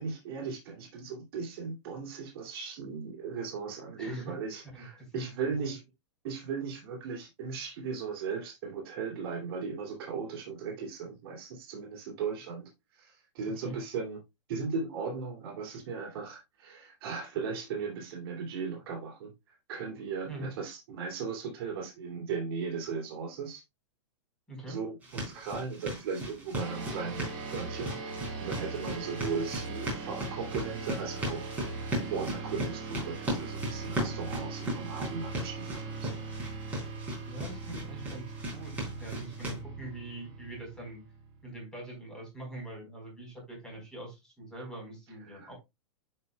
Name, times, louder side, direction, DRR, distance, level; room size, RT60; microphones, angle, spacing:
voice 1, 0.0-5.8 6.2-14.2 14.5-19.3 19.7-23.6 24.7-28.0 28.4-36.2 45.2-45.5, right 5 dB, 55° right, 2.7 m, -37 dB
voice 2, 4.0-4.4 4.7-5.7 13.6-13.8 20.3-20.5 24.5-24.8 37.2-41.0 41.4-45.5, right 2 dB, 5° left, 4.0 m, -43 dB
sound 1, 25.0-39.6, equal, 10° right, 3.8 m, -38 dB
sound 2, 26.6-41.4, right 3 dB, 30° right, 4.2 m, -40 dB
11.0 x 5.3 x 2.2 m
supercardioid pair, 165°, 15 cm